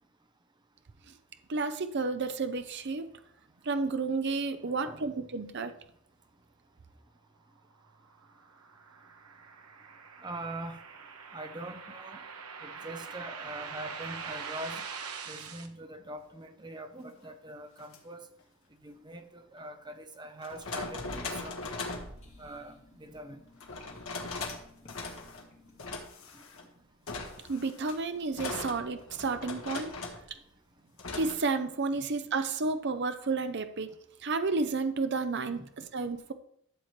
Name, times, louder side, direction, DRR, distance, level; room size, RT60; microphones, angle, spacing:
voice 1, 1.5-3.1 3.6-5.7 27.5-29.9 30.3-30.4 31.1-33.9 34.2-36.3, right 4 dB, 50° right, 9 dB, 0.6 m, -31 dB
voice 2, 4.5-5.1 10.2-10.8 11.3-12.2 12.6-14.9 15.3-18.3 18.8-21.6 22.4-23.4 26.3-26.4 31.9-32.1 35.5-35.7, right 1 dB, 20° right, 7 dB, 0.8 m, -43 dB
sound 1, 7.8-15.7, right 6 dB, 80° right, 1.1 m, -43 dB
sound 2, 17.8-18.0 19.6-19.7 20.4-22.1 23.6-24.6 24.9-25.4 25.8-26.6 27.1-30.3 31.0-31.4, left 3 dB, 70° left, 1.7 m, -39 dB
sound 3, 20.9-26.0, left 1 dB, 30° left, 1.9 m, -53 dB
12.5 x 7.3 x 3.2 m, 0.69 s
head